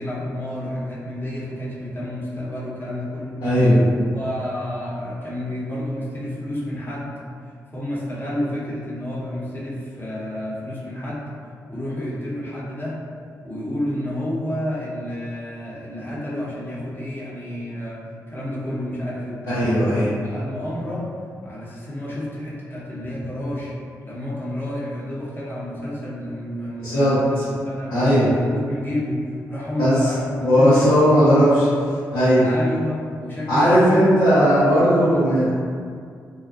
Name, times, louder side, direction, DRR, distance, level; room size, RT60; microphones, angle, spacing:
voice 1, 0.0-3.5 4.1-7.1 7.7-11.3 11.7-13.0 13.4-18.0 18.3-21.1 21.4-23.7 24.0-27.4 27.7-31.6 32.4-34.0 34.3-35.2, left 1 dB, 30° left, -8 dB, 1.0 m, -30 dB
voice 2, 3.4-3.8 19.5-20.1 26.8-27.2 27.9-28.3 29.8-30.0 30.4-31.5 32.1-32.5 33.5-35.5, equal, 90° left, -17 dB, 1.0 m, -17 dB
2.5 x 2.4 x 2.5 m, 2.2 s
supercardioid pair, 45°, 7 cm